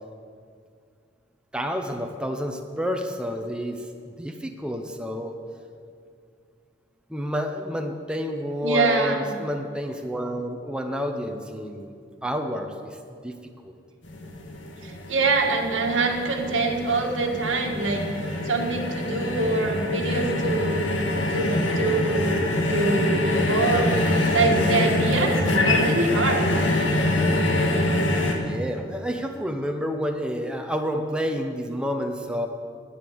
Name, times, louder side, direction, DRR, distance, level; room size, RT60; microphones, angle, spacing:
voice 1, 1.5-5.4 7.1-11.9 12.2-13.3 13.6-13.8 16.4-16.5 28.2-32.5, equal, 5° right, 4 dB, 0.8 m, -29 dB
voice 2, 8.6-9.2 14.8-18.0 18.4-20.9 21.3-24.0 24.3-26.5, right 3 dB, 90° right, 2 dB, 1.8 m, -25 dB
sound 1, 14.0-28.3, left 1 dB, 80° left, 1.7 m, -25 dB
10.5 x 9.7 x 7.8 m, 2.2 s
head